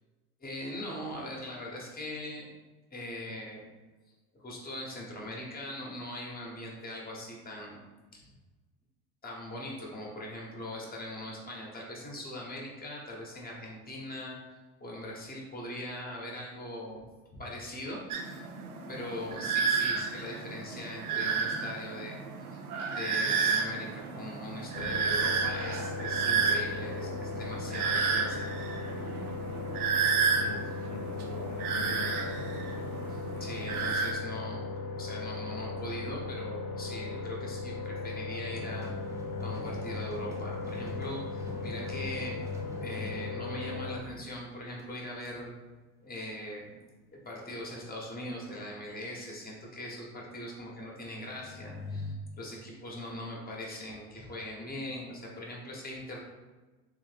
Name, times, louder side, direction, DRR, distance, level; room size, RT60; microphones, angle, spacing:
voice 1, 0.4-2.5 2.9-3.7 4.3-7.8 8.1-8.3 9.2-14.4 14.8-17.0 17.3-18.4 18.9-22.2 22.5-28.5 33.1-38.9 39.4-42.4 42.8-45.5 46.0-46.8 47.1-56.2, left 1 dB, 20° left, -2 dB, 1.3 m, -41 dB
sound 1, 18.1-34.1, right 5 dB, 85° right, 0.7 m, -31 dB
sound 2, 24.7-44.0, left 3 dB, 80° left, 0.7 m, -38 dB
voice 2, 30.3-32.6, left 4 dB, 40° left, 5 dB, 0.6 m, -44 dB
sound 3, 38.5-44.0 44.3-44.4 44.8-44.9 45.3-45.4 51.1-52.2, left 2 dB, 10° right, 0.3 m, -43 dB
3.6 x 3.2 x 3.4 m, 1.2 s
hypercardioid pair, 80°, 43 cm